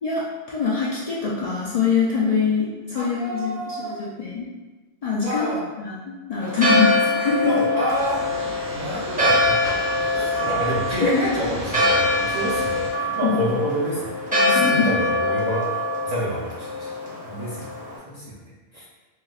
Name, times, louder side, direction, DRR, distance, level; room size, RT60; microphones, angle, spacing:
voice 1, 0.0-4.5 5.0-5.5 5.8-6.0 6.3-7.7 11.0-11.2 13.2-13.4 14.3-14.9, left 5 dB, 60° left, -6 dB, 0.4 m, -24 dB
voice 2, 2.9-4.0 5.2-5.6 7.4-8.3 8.7-15.7 16.0-16.9 17.2-17.7 18.0-18.4 18.7-18.8, equal, 50° right, -8 dB, 0.6 m, -28 dB
Church bell, 6.4-18.0, left 2 dB, 10° right, 0.6 m, -24 dB
sound 1, 7.9-12.9, right 2 dB, 80° right, 0.9 m, -36 dB
4.1 x 2.0 x 2.3 m, 1.2 s
omnidirectional pair, 1.1 m